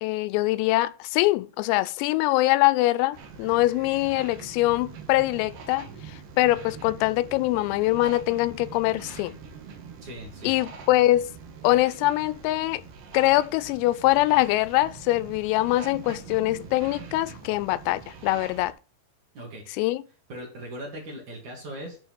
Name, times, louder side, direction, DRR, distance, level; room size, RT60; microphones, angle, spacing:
voice 1, 0.0-9.4 10.4-11.3 11.6-12.8 13.1-18.7 19.8-20.0, left 17 dB, 90° left, 3.3 m, -23 dB
sound 1, 3.1-18.7, right 5 dB, 60° right, 2.3 m, -43 dB
voice 2, 10.0-10.5 19.3-19.8 20.3-22.0, right 1 dB, 45° right, 3.1 m, -39 dB
10.5 x 4.7 x 4.5 m
omnidirectional pair, 5.9 m